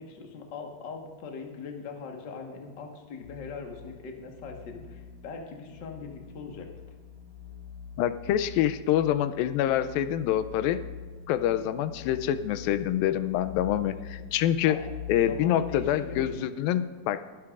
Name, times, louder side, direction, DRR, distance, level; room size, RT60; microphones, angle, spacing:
voice 1, 0.0-6.7 14.7-14.8 15.1-16.5, left 5 dB, 60° left, 2 dB, 1.2 m, -41 dB
sound 1, 3.2-16.3, left 7 dB, 35° left, 5.1 m, -44 dB
voice 2, 8.0-10.8 11.3-14.8 15.1-17.2, left 11 dB, 85° left, 13 dB, 2.3 m, -26 dB
23.0 x 10.5 x 2.5 m, 1.5 s
omnidirectional pair, 4.2 m